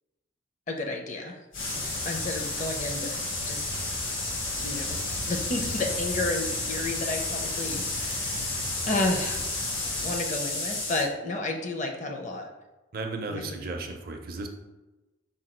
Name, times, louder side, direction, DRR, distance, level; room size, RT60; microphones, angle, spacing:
voice 1, 0.7-1.4 2.1-3.7 4.6-5.0 5.2-9.4 10.0-12.5 13.3-13.6, left 2 dB, 35° left, 3 dB, 0.5 m, -32 dB
sound 1, 1.5-11.1, left 2 dB, 75° left, 1.4 m, -32 dB
sound 2, 1.5-10.2, equal, 60° left, 1.0 m, -39 dB
voice 2, 12.9-14.5, right 3 dB, 45° right, 4 dB, 0.5 m, -35 dB
5.0 x 2.3 x 4.3 m, 1.1 s
head